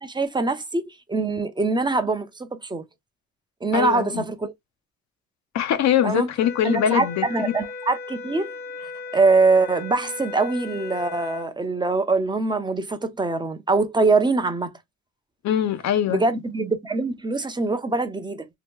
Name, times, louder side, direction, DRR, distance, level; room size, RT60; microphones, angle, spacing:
voice 1, 0.0-2.8 3.6-4.5 6.0-6.3 6.6-8.5 8.8-14.7 16.1-18.5, right 3 dB, 15° right, 0.5 m, -23 dB
voice 2, 3.7-4.3 5.5-7.5 15.4-16.2, left 10 dB, 65° left, 0.5 m, -22 dB
sound 1, 6.4-11.5, left 4 dB, 30° left, 0.7 m, -36 dB
2.8 x 2.2 x 3.5 m
cardioid pair, 90°, 30 cm